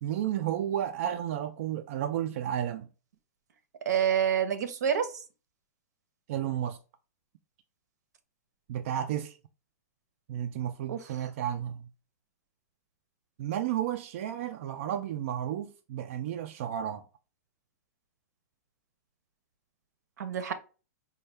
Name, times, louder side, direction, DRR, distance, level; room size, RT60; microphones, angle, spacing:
voice 1, 0.0-2.9 6.3-6.8 8.7-9.4 10.3-11.9 13.4-17.0, right 10 dB, 50° right, 0.3 m, -32 dB
voice 2, 3.9-5.1 10.9-11.0 20.2-20.5, right 8 dB, 85° right, 0.7 m, -27 dB
4.4 x 2.2 x 3.2 m
supercardioid pair, 160°, 9 cm